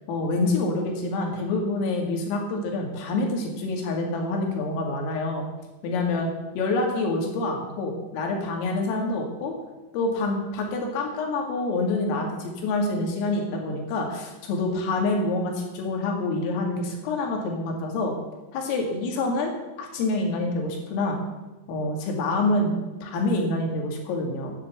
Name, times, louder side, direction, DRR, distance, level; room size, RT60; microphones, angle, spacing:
voice 1, 0.1-5.5 5.8-6.3 6.6-9.5 9.9-18.1 18.5-19.5 19.8-21.2 21.7-24.5, left 2 dB, 80° left, 1 dB, 4.9 m, -27 dB
11.0 x 9.8 x 8.0 m, 1.1 s
omnidirectional pair, 5.9 m